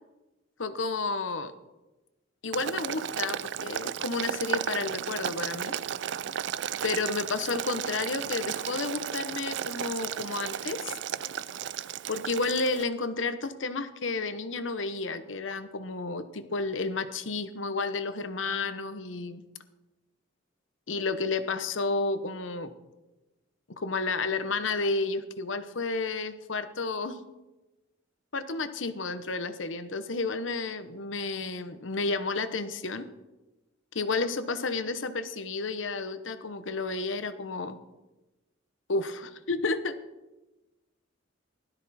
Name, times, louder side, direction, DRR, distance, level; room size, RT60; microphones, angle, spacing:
voice 1, 0.6-1.5 2.4-5.7 6.8-11.0 12.1-19.4 20.9-22.7 23.8-27.2 28.3-33.1 33.9-37.8 38.9-39.9, left 3 dB, 80° left, 11 dB, 1.0 m, -31 dB
Boiling, 2.5-12.8, right 9 dB, 65° right, 0.4 m, -34 dB
16.5 x 13.0 x 4.3 m, 1.1 s
head